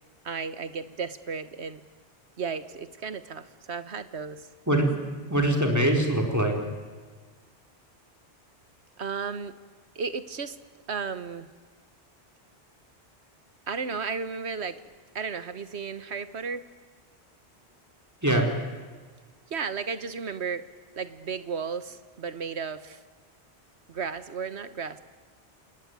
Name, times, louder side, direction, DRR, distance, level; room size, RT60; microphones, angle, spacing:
voice 1, 0.2-1.8 2.4-4.5 9.0-9.5 9.9-10.6 10.9-11.5 13.7-14.8 15.1-16.6 19.5-20.7 21.0-23.0 23.9-25.0, right 5 dB, 75° right, 13 dB, 1.5 m, -34 dB
voice 2, 5.3-6.5 18.2-18.5, right 1 dB, 15° right, 2 dB, 4.2 m, -22 dB
27.0 x 20.5 x 9.5 m, 1.5 s
omnidirectional pair, 1.1 m